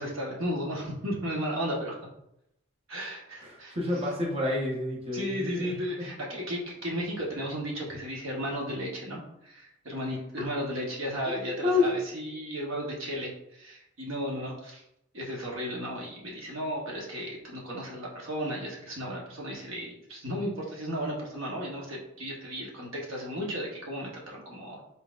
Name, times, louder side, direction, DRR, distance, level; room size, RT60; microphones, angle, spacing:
voice 1, 0.0-2.0 2.9-3.8 5.1-14.8 15.1-24.8, equal, 70° right, -2 dB, 1.1 m, -34 dB
voice 2, 3.4-6.1 11.3-11.9, left 3 dB, 30° right, -4 dB, 0.8 m, -29 dB
4.1 x 4.0 x 2.4 m, 0.80 s
head